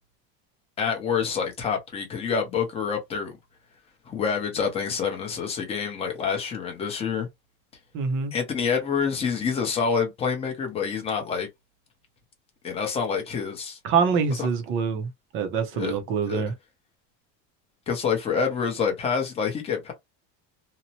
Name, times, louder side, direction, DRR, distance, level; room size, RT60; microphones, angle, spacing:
voice 1, 0.8-3.4 4.1-7.3 8.3-11.5 12.6-13.8 14.3-14.5 15.7-16.0 16.3-16.4 17.9-19.9, left 6 dB, 15° left, 0.6 m, -27 dB
voice 2, 7.9-8.3 13.8-15.1 15.3-16.5, right 6 dB, 35° right, 0.5 m, -25 dB
2.8 x 2.1 x 2.8 m
cardioid pair, 180°, 36 cm